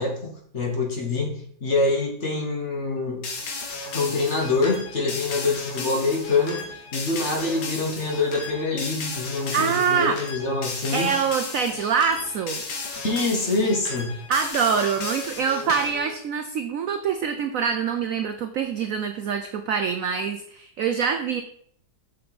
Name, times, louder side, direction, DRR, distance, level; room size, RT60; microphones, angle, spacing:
voice 1, 0.0-3.3 3.9-6.6 6.9-11.1 13.0-14.2, left 3 dB, 40° left, 2 dB, 1.4 m, -25 dB
sound 1, 3.2-16.1, left 4 dB, 65° left, 1.8 m, -34 dB
voice 2, 9.5-10.2 10.9-12.6 14.3-21.4, right 6 dB, 75° right, 7 dB, 0.7 m, -25 dB
6.6 x 6.5 x 4.1 m, 0.63 s
omnidirectional pair, 2.0 m